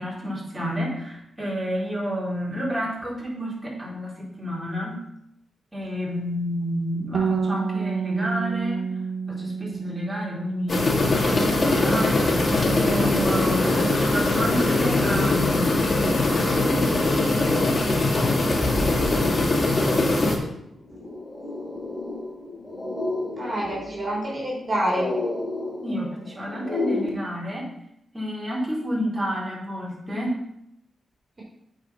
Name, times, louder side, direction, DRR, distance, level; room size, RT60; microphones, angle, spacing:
voice 1, 0.0-5.0 5.7-8.9 9.3-15.8 25.8-27.7 28.1-30.4, equal, 15° right, -5 dB, 3.9 m, -30 dB
Bass guitar, 7.1-13.4, right 5 dB, 80° right, 0.4 m, -30 dB
sound 1, 10.5-10.6 10.9-27.1, left 2 dB, 20° left, 3.4 m, -33 dB
sound 2, 10.7-20.4, left 2 dB, 45° left, 2.0 m, -21 dB
voice 2, 23.4-25.1, equal, 40° right, -4 dB, 3.3 m, -27 dB
8.2 x 4.9 x 5.9 m, 0.77 s
cardioid pair, 60°, 0 cm